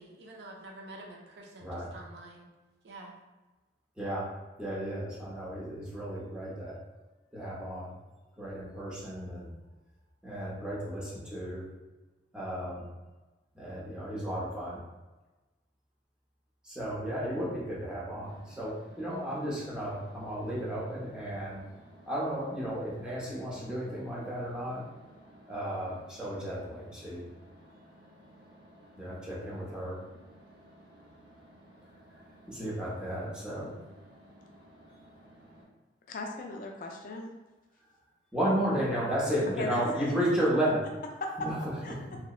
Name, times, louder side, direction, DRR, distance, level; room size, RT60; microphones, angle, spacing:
voice 1, 0.0-2.5 2.8-3.2, right 2 dB, 60° right, 0 dB, 0.4 m, -48 dB
voice 2, 1.6-1.9 4.0-4.2 4.6-6.7 7.3-7.9 8.4-9.5 10.2-11.6 12.3-12.9 13.5-14.8 16.6-21.6 22.1-24.8 25.5-27.2 29.0-30.0 32.5-33.7 38.3-40.8 41.4-41.5 42.1-42.2, equal, 5° right, -7 dB, 0.6 m, -33 dB
sound 1, 18.2-35.6, right 1 dB, 85° right, 0.8 m, -56 dB
voice 3, 36.1-37.3 39.6-40.1 40.4-40.5 41.2-41.3 41.8-42.0, left 2 dB, 50° left, 2 dB, 0.3 m, -37 dB
2.7 x 2.0 x 2.3 m, 1.1 s
head